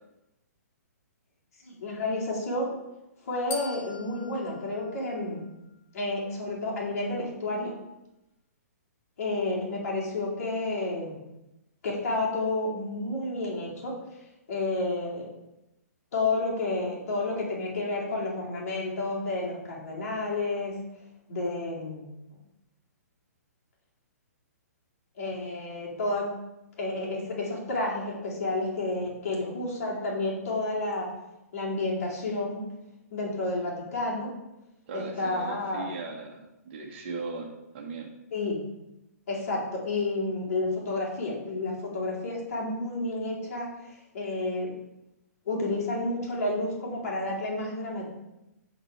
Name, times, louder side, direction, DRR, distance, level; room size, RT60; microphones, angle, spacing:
voice 1, 1.6-2.8 3.2-5.4 5.9-7.8 9.2-11.2 11.8-14.0 14.5-15.3 16.1-20.7 21.3-22.1 25.2-26.3 26.8-31.1 31.5-32.7 33.1-34.3 34.9-35.9 38.3-38.6 39.3-44.8 45.5-48.1, left 2 dB, 60° left, -3 dB, 2.3 m, -30 dB
sound 1, 3.5-5.8, left 4 dB, 30° left, 0.8 m, -43 dB
voice 2, 34.9-38.1, right 4 dB, 45° right, 1 dB, 1.2 m, -38 dB
6.7 x 4.0 x 4.5 m, 0.93 s
hypercardioid pair, 135°, 9 cm